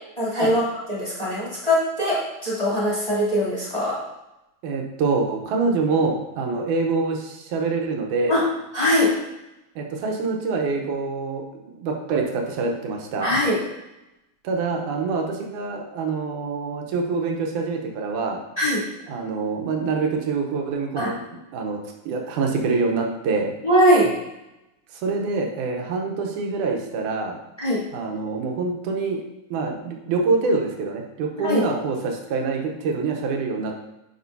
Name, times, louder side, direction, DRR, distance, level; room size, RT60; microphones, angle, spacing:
voice 1, 0.2-4.0 8.3-8.4 8.7-9.1 13.2-13.6 18.6-18.8 20.9-21.1 23.6-24.1 27.6-27.8 31.4-31.6, equal, 10° left, -10 dB, 2.7 m, -21 dB
voice 2, 4.6-8.4 9.8-13.3 14.4-18.4 19.1-21.8 22.1-23.5 24.9-27.4 27.9-29.2 29.5-33.7, right 4 dB, 85° right, 2 dB, 2.4 m, -25 dB
10.5 x 5.2 x 2.7 m, 0.91 s
omnidirectional pair, 3.5 m